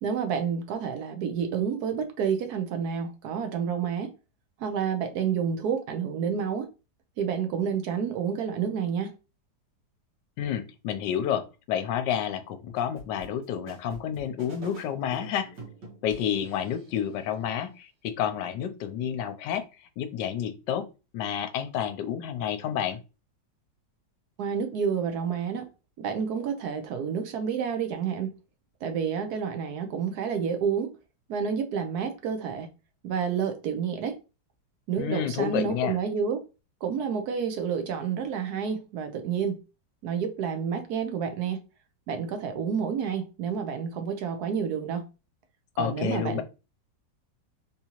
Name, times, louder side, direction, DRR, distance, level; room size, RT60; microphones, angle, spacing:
voice 1, 0.0-4.1 4.6-6.7 7.2-9.1 24.4-25.7 26.0-28.4 28.8-30.9 31.3-32.7 33.0-34.2 34.9-36.4 36.8-39.6 40.0-41.6 42.1-45.0 45.8-46.4, right 7 dB, 70° right, 1.1 m, -29 dB
voice 2, 10.4-15.5 16.0-19.7 20.0-20.9 21.1-23.0 35.0-36.0 45.8-46.4, left 9 dB, 80° left, 1.2 m, -30 dB
sound 1, 12.8-17.1, right 1 dB, 90° right, 1.7 m, -46 dB
3.7 x 2.7 x 2.8 m
omnidirectional pair, 1.9 m